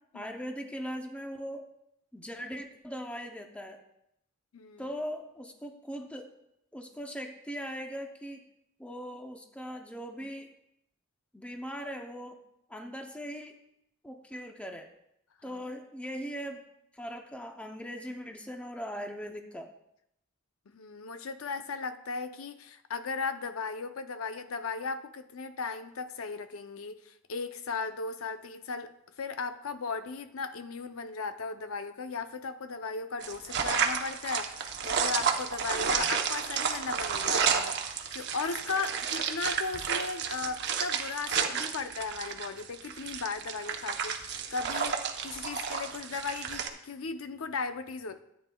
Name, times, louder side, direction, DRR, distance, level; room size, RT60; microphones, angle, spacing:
voice 1, 0.1-1.7 2.1-3.8 4.8-6.3 6.7-8.4 8.8-10.5 11.3-12.4 12.7-13.5 14.0-14.9 15.4-16.6 16.9-19.7, equal, 5° left, 0.6 m, -40 dB
voice 2, 4.5-4.9 15.4-15.6 20.7-28.9 29.2-48.2, left 4 dB, 75° left, 0.6 m, -36 dB
sound 1, 33.2-46.7, right 6 dB, 55° right, 0.8 m, -31 dB
13.5 x 8.8 x 2.3 m
head